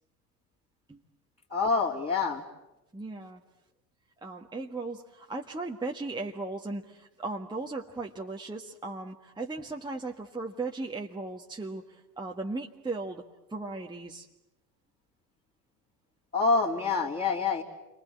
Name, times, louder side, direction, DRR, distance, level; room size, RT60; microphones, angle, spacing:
voice 1, 1.5-2.4 16.3-17.6, left 4 dB, 20° left, -6 dB, 3.6 m, -26 dB
voice 2, 2.9-3.4 4.2-13.2 13.5-14.3, right 3 dB, 10° right, 0 dB, 1.6 m, -37 dB
29.0 x 24.5 x 8.5 m, 0.98 s
hypercardioid pair, 70°, 49 cm